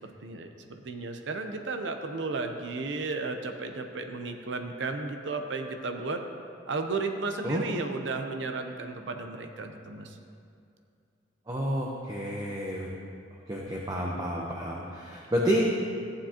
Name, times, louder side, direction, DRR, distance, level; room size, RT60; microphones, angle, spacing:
voice 1, 0.0-6.2 6.7-10.2, right 3 dB, 70° right, 5 dB, 0.7 m, -34 dB
voice 2, 11.5-12.9 13.5-15.6, equal, 20° right, -3 dB, 0.8 m, -30 dB
14.0 x 9.7 x 2.9 m, 2.5 s
head